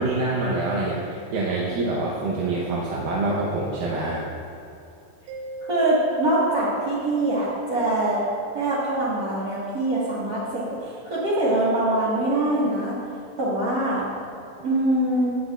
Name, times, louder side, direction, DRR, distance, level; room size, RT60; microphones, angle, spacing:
voice 1, 0.0-4.2, right 2 dB, 75° right, -5 dB, 2.7 m, -26 dB
Mallet percussion, 5.3-7.8, right 5 dB, 60° right, 1.9 m, -38 dB
voice 2, 5.6-8.2 8.5-13.0 13.4-14.1 14.6-15.4, right 1 dB, 40° right, -10 dB, 1.4 m, -23 dB
18.5 x 7.7 x 2.5 m, 2.8 s
omnidirectional pair, 4.2 m